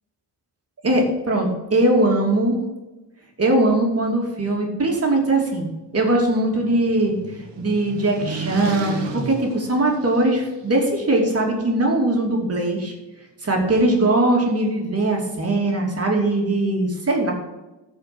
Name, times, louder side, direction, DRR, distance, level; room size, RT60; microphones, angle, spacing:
voice 1, 0.8-2.6 3.4-5.7 5.9-7.1 7.6-9.0 9.2-12.9 13.4-17.3, right 2 dB, 35° right, 1 dB, 2.7 m, -20 dB
sound 1, 5.9-10.7, right 4 dB, 90° right, 1.8 m, -34 dB
14.5 x 5.2 x 5.9 m, 1.1 s
wide cardioid pair, 175°, 42 cm